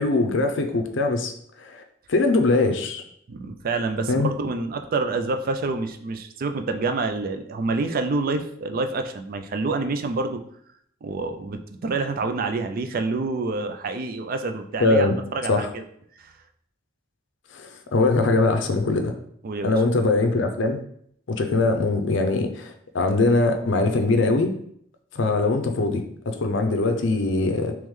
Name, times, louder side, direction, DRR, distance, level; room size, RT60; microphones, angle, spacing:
voice 1, 0.0-1.3 1.6-1.8 2.1-3.0 4.1-4.3 14.8-15.2 15.5-15.7 17.5-19.1 19.6-20.8 21.3-24.5 25.1-27.7, left 3 dB, 70° left, 6 dB, 0.5 m, -22 dB
voice 2, 3.3-10.4 11.0-15.9 16.2-16.3 19.4-19.7, right 3 dB, 50° right, 7 dB, 0.4 m, -27 dB
3.6 x 3.0 x 3.1 m, 0.67 s
head